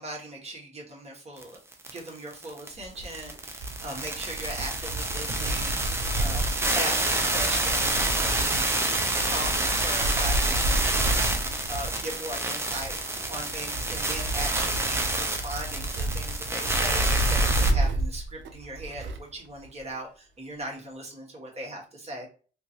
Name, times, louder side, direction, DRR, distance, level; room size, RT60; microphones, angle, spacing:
voice 1, 0.0-1.5 1.9-6.5 6.7-8.7 9.2-22.3, right 1 dB, 30° right, -2 dB, 1.4 m, -39 dB
sound 1, 1.4-1.5 1.7-17.7, right 2 dB, 10° right, 0.6 m, -28 dB
Wind, 2.7-19.3 19.6-19.7 20.7-20.8, right 1 dB, 70° right, 0.6 m, -31 dB
2.9 x 2.6 x 2.9 m, 0.38 s
cardioid pair, 90°, 20 cm